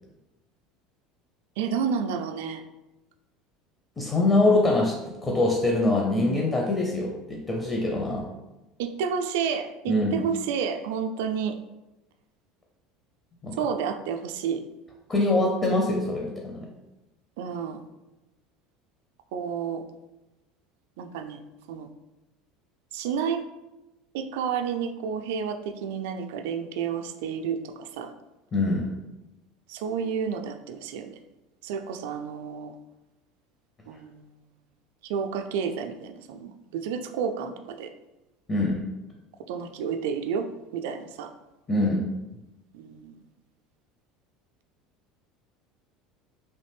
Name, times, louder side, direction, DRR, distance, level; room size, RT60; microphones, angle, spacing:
voice 1, 1.6-2.6 8.8-11.6 13.6-14.7 17.4-17.8 19.3-19.8 21.0-21.4 21.7-21.9 22.9-23.4 24.1-28.1 29.7-31.2 31.6-32.8 33.9-34.3 35.0-37.9 39.5-41.3 42.7-43.2, right 7 dB, 70° right, 7 dB, 0.3 m, -30 dB
voice 2, 4.0-8.3 9.9-10.2 13.4-13.6 15.1-16.7 28.5-28.9 38.5-38.8 41.7-42.0, left 2 dB, 30° left, -1 dB, 0.6 m, -24 dB
3.1 x 2.5 x 3.3 m, 1.0 s
hypercardioid pair, 75°, 0 cm